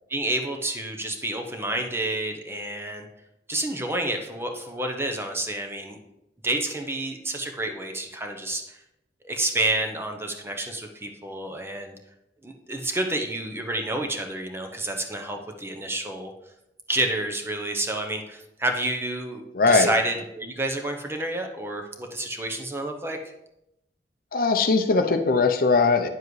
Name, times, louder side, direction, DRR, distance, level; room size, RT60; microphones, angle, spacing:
voice 1, 0.1-3.0 3.5-6.0 6.4-8.8 9.2-11.9 12.4-16.3 16.9-23.2, right 1 dB, 15° right, 4 dB, 0.7 m, -29 dB
voice 2, 19.5-19.9 24.3-26.1, left 4 dB, 50° left, 7 dB, 0.6 m, -20 dB
9.3 x 7.3 x 3.2 m, 0.87 s
head